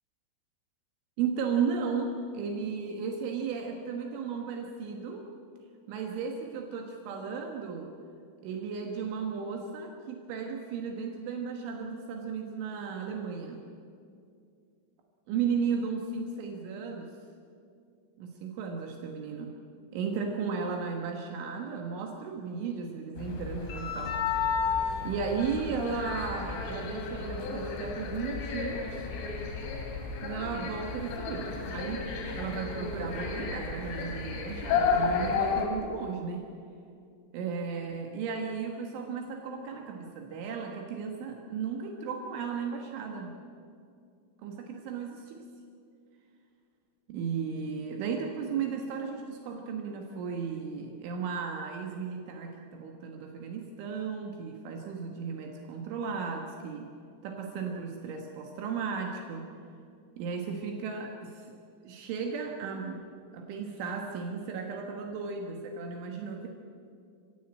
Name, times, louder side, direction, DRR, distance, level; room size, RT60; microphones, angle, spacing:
voice 1, 1.2-5.3 5.9-7.9 8.4-13.6 15.3-17.1 18.2-19.6 19.9-24.2 25.0-29.1 30.2-36.5 37.3-43.4 44.4-45.5 47.1-56.9 57.2-59.5 60.2-61.6 61.8-63.0 63.3-66.5, right 5 dB, 75° right, 2 dB, 3.8 m, -35 dB
sound 1, 23.2-35.7, left 5 dB, 80° left, 5.1 m, -32 dB
27.0 x 16.0 x 8.8 m, 2.4 s
omnidirectional pair, 5.7 m